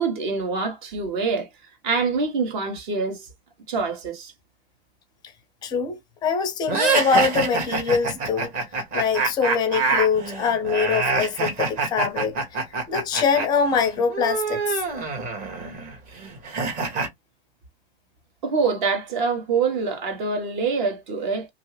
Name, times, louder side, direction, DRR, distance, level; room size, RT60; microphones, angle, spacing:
voice 1, 0.0-1.5 1.8-3.3 3.7-4.3 18.4-21.5, right 4 dB, 45° right, 1.1 m, -25 dB
voice 2, 5.6-8.5 8.9-12.4 12.9-14.8, left 6 dB, 15° left, 0.5 m, -23 dB
sound 1, 6.7-13.5 13.7-17.1, right 4 dB, 25° right, 1.0 m, -26 dB
2.8 x 2.6 x 3.2 m
hypercardioid pair, 130°, 32 cm